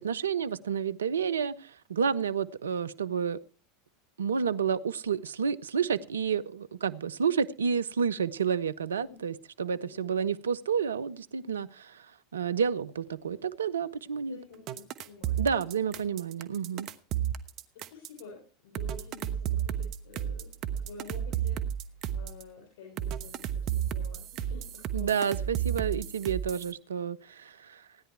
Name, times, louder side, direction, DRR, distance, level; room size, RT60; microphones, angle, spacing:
voice 1, 0.0-3.4 4.2-9.3 9.6-12.0 12.3-14.4 15.4-16.9 24.9-27.8, right 7 dB, 80° right, 0.6 m, -30 dB
voice 2, 9.8-10.1 14.2-15.9 17.1-17.3 17.7-20.5 20.8-25.9, left 4 dB, 65° left, 6.3 m, -50 dB
sound 1, 14.7-18.2 18.7-22.4 23.0-26.7, right 10 dB, 45° right, 1.1 m, -32 dB
16.5 x 10.0 x 4.6 m
figure-of-eight pair, 85°, 0 cm